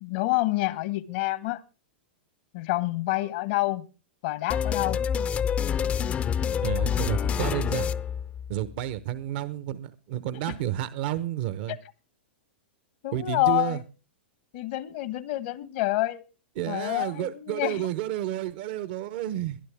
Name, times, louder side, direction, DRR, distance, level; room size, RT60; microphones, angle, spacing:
voice 1, 0.0-1.6 2.5-3.8 4.2-5.0 11.7-11.8 13.0-13.8 14.5-16.2 16.7-17.9, left 18 dB, 60° left, 1.2 m, -27 dB
sound 1, 4.5-8.8, left 8 dB, 25° left, 0.6 m, -27 dB
voice 2, 6.6-7.9 8.5-11.8 13.1-13.8 16.6-19.6, right 13 dB, 55° right, 1.0 m, -31 dB
21.5 x 11.5 x 3.5 m
hypercardioid pair, 125°, 6 cm